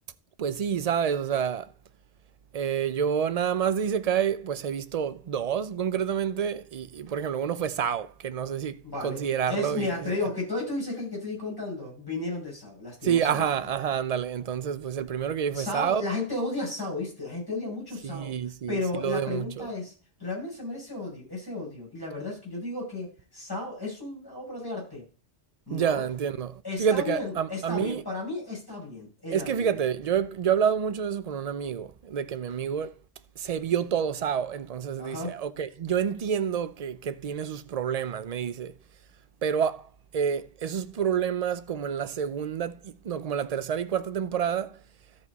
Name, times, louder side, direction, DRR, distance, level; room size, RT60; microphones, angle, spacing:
voice 1, 0.4-1.7 2.5-10.2 13.0-16.0 18.0-19.7 25.7-28.0 29.3-32.9 33.4-38.7 39.4-39.9 40.1-44.8, right 8 dB, 50° right, 0.5 m, -28 dB
voice 2, 8.9-13.5 15.5-18.3 18.7-19.9 20.2-25.0 25.7-26.0 26.6-29.8 35.0-35.4, left 2 dB, 20° left, 6.2 m, -34 dB
13.0 x 5.3 x 4.0 m
omnidirectional pair, 1.2 m